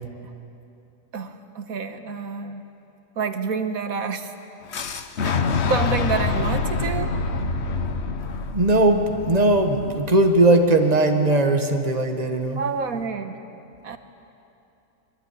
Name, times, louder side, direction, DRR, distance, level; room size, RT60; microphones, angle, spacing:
voice 1, 1.1-2.6 3.2-4.3 5.2-5.3 5.7-7.2 12.6-13.4 13.8-14.0, right 5 dB, 80° right, 8 dB, 1.7 m, -28 dB
Boom, 4.7-10.6, left 4 dB, 55° left, 1.2 m, -26 dB
voice 2, 8.5-12.6, right 2 dB, 30° right, 5 dB, 1.7 m, -19 dB
25.0 x 23.0 x 9.9 m, 2.7 s
omnidirectional pair, 1.5 m